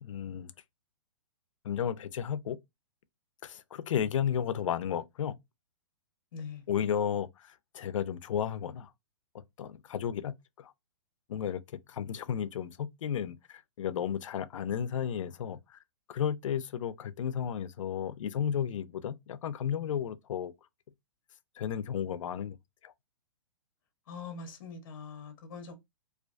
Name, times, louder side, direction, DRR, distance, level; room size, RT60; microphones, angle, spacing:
voice 1, 0.0-0.5 1.6-2.6 3.4-5.4 6.7-8.9 9.3-10.7 11.3-15.8 16.1-20.5 21.6-22.6 22.8-22.9, left 8 dB, 75° left, 0.4 m, -33 dB
voice 2, 6.3-6.6 24.1-25.7, left 5 dB, 45° left, 0.7 m, -43 dB
2.4 x 2.2 x 2.4 m
hypercardioid pair, 170°, 17 cm